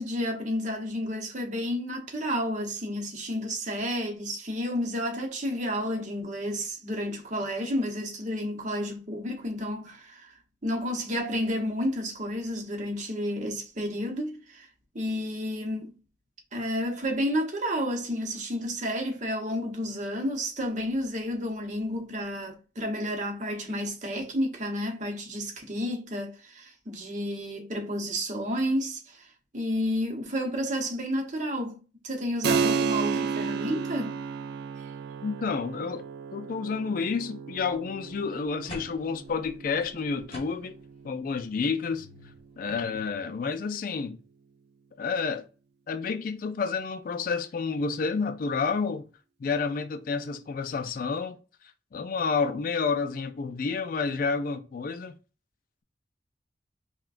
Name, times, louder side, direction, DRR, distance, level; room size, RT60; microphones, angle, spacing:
voice 1, 0.0-10.4 10.6-14.7 14.9-15.9 16.5-34.2 34.8-34.9, equal, 40° right, 0.9 m, -31 dB
Keyboard (musical), 32.4-42.6, right 5 dB, 60° right, 0.3 m, -33 dB
voice 2, 35.2-36.0 36.3-40.7 41.0-42.1 42.6-44.2 45.0-45.5 45.9-49.1 49.4-51.4 51.9-55.2, left 5 dB, 50° left, 0.3 m, -30 dB
sound 1, 37.7-37.8 38.2-41.0 41.4-41.5 41.9-43.2, left 1 dB, 30° left, 1.5 m, -47 dB
5.7 x 2.2 x 2.5 m
head